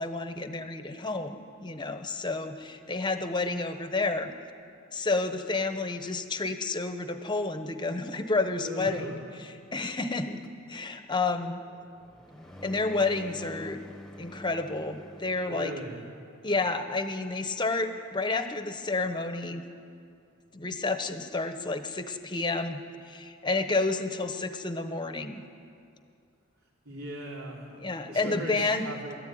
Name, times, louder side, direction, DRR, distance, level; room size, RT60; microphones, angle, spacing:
voice 1, 0.0-4.3 4.9-9.2 9.7-10.4 10.7-11.6 12.6-13.8 14.2-15.7 16.4-19.6 20.5-25.4 27.8-28.8, left 3 dB, 20° left, 8 dB, 1.0 m, -30 dB
voice 2, 8.6-9.2 15.4-16.0 26.8-27.7 28.0-29.2, equal, 75° right, -3 dB, 4.5 m, -38 dB
sound 1, 10.4-16.0, left 1 dB, ahead, 1.3 m, -47 dB
22.0 x 14.0 x 9.4 m, 2.4 s
head